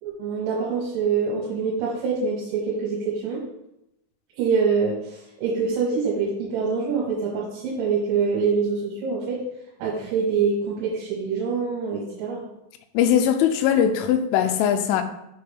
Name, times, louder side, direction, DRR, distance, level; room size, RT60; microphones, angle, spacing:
voice 1, 0.0-3.4 4.4-9.4 9.8-12.4, right 5 dB, 75° right, 3.8 m, -25 dB
voice 2, 12.9-15.0, left 9 dB, 90° left, 3.2 m, -20 dB
7.6 x 6.9 x 3.4 m
omnidirectional pair, 5.6 m